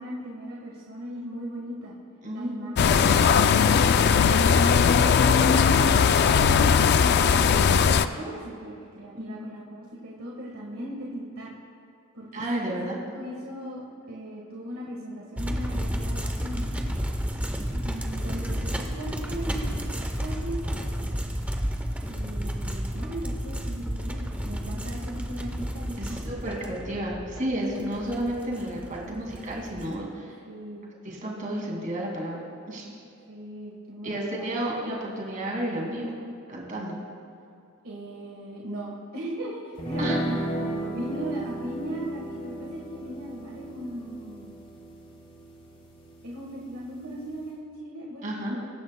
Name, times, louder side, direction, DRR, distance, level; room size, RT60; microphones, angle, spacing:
voice 1, 0.0-1.9 2.3-4.7 5.0-5.9 6.2-11.5 12.1-12.8 13.1-13.8 14.1-16.8 17.8-19.8 20.2-20.8 22.1-26.2 26.6-26.7 27.4-27.5 28.8-29.2 30.5-30.9 33.3-34.5 37.8-44.5 46.2-48.7, right 1 dB, 90° right, -3 dB, 1.5 m, -38 dB
voice 2, 2.2-2.7 9.1-9.5 12.3-13.0 17.6-17.9 26.0-30.3 31.0-32.4 32.7-33.0 34.0-36.1 36.5-36.9 40.0-40.2 48.2-48.6, right 1 dB, 35° right, -2 dB, 2.2 m, -32 dB
sound 1, 2.8-8.1, left 6 dB, 50° left, 0.3 m, -19 dB
sound 2, 15.4-30.0, equal, 5° right, 0.6 m, -32 dB
sound 3, 39.8-47.5, right 1 dB, 25° left, 1.4 m, -35 dB
21.5 x 10.5 x 2.2 m, 2.6 s
head